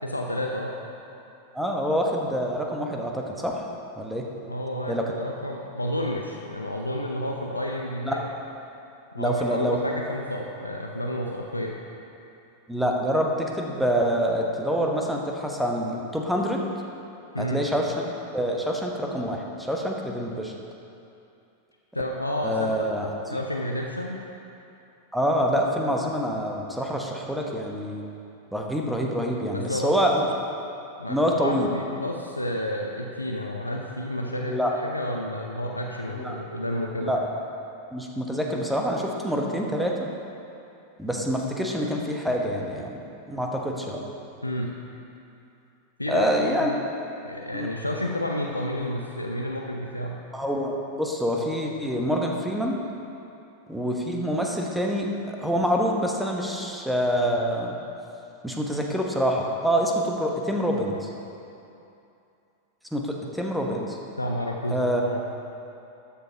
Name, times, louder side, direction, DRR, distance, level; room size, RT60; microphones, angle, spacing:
voice 1, 0.0-0.7 4.5-8.3 9.1-11.8 17.3-17.6 21.9-22.9 23.3-24.2 29.5-29.9 31.0-37.1 44.4-44.7 46.0-46.7 47.2-50.2 64.2-65.2, left 1 dB, 85° left, 0 dB, 0.7 m, -30 dB
voice 2, 1.5-3.6 4.0-4.3 4.9-5.0 8.0-8.2 9.2-9.8 12.7-16.6 17.4-17.9 18.3-20.5 22.4-23.4 25.1-28.0 28.5-30.2 31.1-31.7 34.3-34.7 36.2-36.4 37.0-37.2 37.9-39.9 41.0-43.0 43.3-44.0 46.1-46.7 47.5-47.7 50.3-52.8 53.7-57.7 58.4-61.1 62.9-64.0 64.7-65.0, equal, ahead, 0 dB, 1.2 m, -26 dB
12.5 x 6.8 x 5.3 m, 2.7 s
figure-of-eight pair, 90°, 0 cm